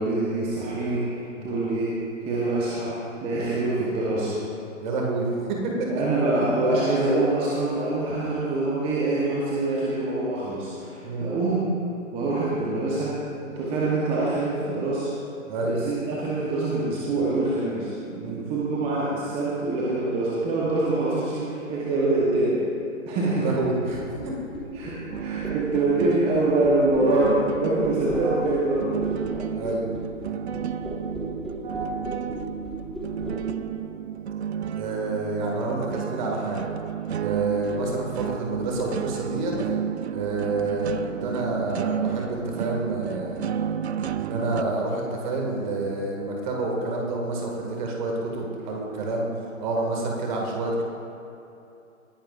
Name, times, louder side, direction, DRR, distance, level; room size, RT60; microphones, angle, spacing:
voice 1, 0.0-2.0 2.2-3.0 3.2-4.4 5.9-11.7 12.1-13.2 13.5-15.1 15.6-22.6 23.1-23.5 24.8-29.1 31.6-31.8, right 2 dB, 15° right, -6 dB, 1.0 m, -25 dB
voice 2, 4.8-5.9 6.4-6.6 11.0-11.3 15.5-15.8 18.2-18.4 23.3-24.4 29.5-29.8 34.8-36.6 37.1-39.5 40.1-43.5 44.2-49.3 49.6-50.8, right 2 dB, 35° right, -1 dB, 2.1 m, -28 dB
sound 1, 23.6-33.4, right 1 dB, ahead, 1.6 m, -36 dB
sound 2, 25.1-44.6, right 9 dB, 55° right, 0.5 m, -32 dB
19.0 x 10.5 x 2.5 m, 2.8 s
figure-of-eight pair, 135°, 40 cm